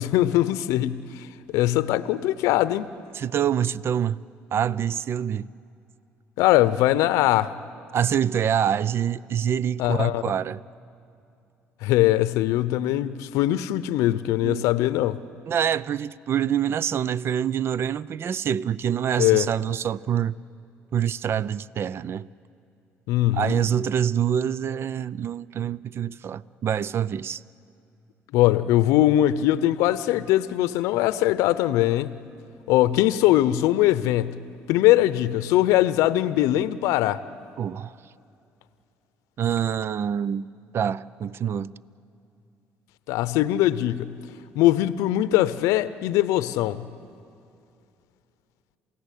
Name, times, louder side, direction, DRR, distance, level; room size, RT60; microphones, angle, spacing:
voice 1, 0.0-2.9 6.4-7.5 9.8-10.2 11.8-15.2 19.2-19.5 23.1-23.5 28.3-32.1 32.7-34.4 34.7-37.2 43.1-44.1 44.5-46.9, left 14 dB, 75° left, 0.7 m, -21 dB
voice 2, 3.1-4.2 4.5-5.5 7.9-10.6 14.4-14.6 15.5-20.4 20.9-22.3 23.3-27.4 37.6-37.9 39.4-40.5 40.7-41.7, right 9 dB, 50° right, 0.5 m, -26 dB
28.0 x 17.0 x 8.4 m
supercardioid pair, 70°, 5 cm